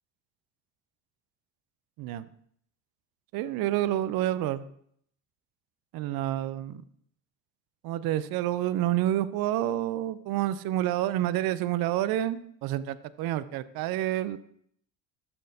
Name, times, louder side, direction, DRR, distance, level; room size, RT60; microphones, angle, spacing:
voice 1, 3.3-4.6 5.9-6.8 7.8-14.4, right 13 dB, 55° right, 16 dB, 0.6 m, -28 dB
12.5 x 4.3 x 2.7 m, 0.66 s
hypercardioid pair, 60°, 45 cm